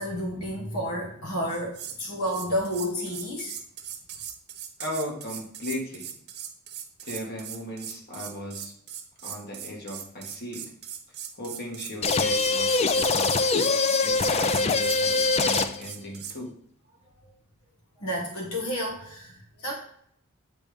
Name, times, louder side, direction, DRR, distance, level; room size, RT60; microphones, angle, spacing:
voice 1, 0.0-3.5 17.2-17.3 18.0-19.7, equal, 75° left, 0 dB, 1.4 m, -31 dB
sound 1, 1.5-2.0 2.3-16.4, right 9 dB, 50° right, 1.0 m, -39 dB
voice 2, 4.8-6.1 7.0-8.7 9.2-10.7 11.4-13.4 14.0-16.5, left 1 dB, 45° left, -1 dB, 1.7 m, -36 dB
sound 2, 12.0-15.9, left 3 dB, 30° left, 0.4 m, -23 dB
8.8 x 3.4 x 5.1 m, 0.69 s
head